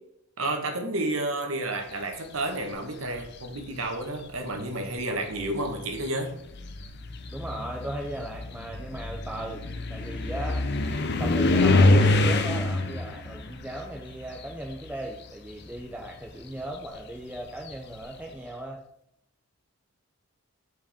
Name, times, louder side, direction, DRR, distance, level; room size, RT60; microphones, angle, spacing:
voice 1, 0.4-6.3, right 2 dB, 65° right, 4 dB, 1.3 m, -31 dB
sound 1, 3.0-3.6 4.6-4.7 5.3-15.2 15.4-18.1, left 2 dB, 50° left, 0.6 m, -26 dB
voice 2, 7.3-10.7 11.1-18.8, right 1 dB, 5° right, 0 dB, 0.5 m, -37 dB
7.6 x 4.8 x 3.5 m, 0.77 s
head